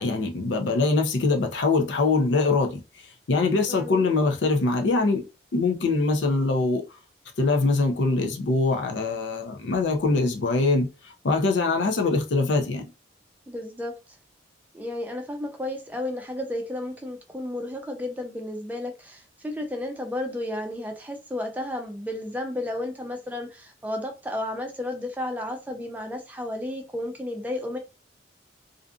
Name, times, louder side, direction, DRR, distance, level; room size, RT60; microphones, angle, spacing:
voice 1, 0.0-2.8 3.3-5.2 5.5-6.8 7.4-10.9 11.2-12.8, left 3 dB, 75° left, 0.5 m, -23 dB
voice 2, 3.7-4.0 13.5-13.9 14.7-27.8, left 1 dB, 10° right, 0.4 m, -32 dB
2.5 x 2.4 x 2.4 m
head